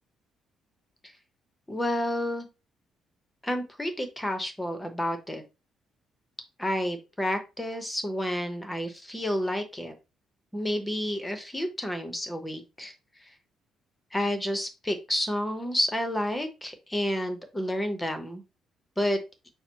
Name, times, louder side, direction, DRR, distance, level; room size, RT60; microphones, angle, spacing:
voice 1, 1.7-2.5 3.4-5.4 6.6-9.9 10.5-12.9 14.1-18.4 19.0-19.2, left 1 dB, 10° left, 7 dB, 0.8 m, -30 dB
5.5 x 2.0 x 4.5 m, 0.28 s
cardioid pair, 145°, 0 cm